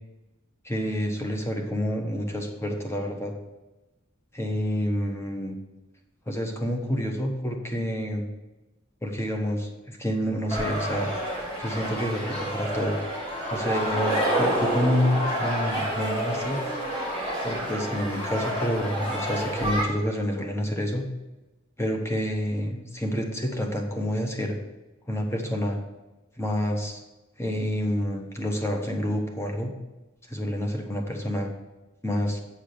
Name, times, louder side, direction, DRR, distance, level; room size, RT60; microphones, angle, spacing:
voice 1, 0.6-3.3 4.3-5.6 6.3-8.3 9.0-11.1 11.6-13.0 13.5-16.6 17.4-21.0 21.8-24.6 25.1-25.8 26.4-27.0 27.4-29.7 30.3-31.5 32.0-32.4, equal, 15° left, 2 dB, 1.2 m, -28 dB
sound 1, 10.5-19.8, equal, 30° left, 2.9 m, -28 dB
8.9 x 4.9 x 6.7 m, 1.1 s
head